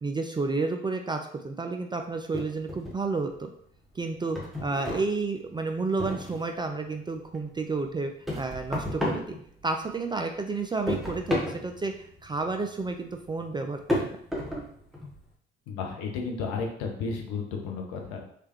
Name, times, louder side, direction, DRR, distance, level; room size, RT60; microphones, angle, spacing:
voice 1, 0.0-3.5 4.0-9.3 9.6-14.1, right 3 dB, 15° right, 5 dB, 0.3 m, -31 dB
sound 1, 2.3-3.4 3.7-6.6 7.0-10.0 10.3-15.3, left 1 dB, ahead, 1.1 m, -33 dB
voice 2, 15.7-18.3, left 4 dB, 65° left, 2 dB, 0.9 m, -33 dB
3.3 x 3.2 x 3.0 m, 0.64 s
figure-of-eight pair, 50°, 30 cm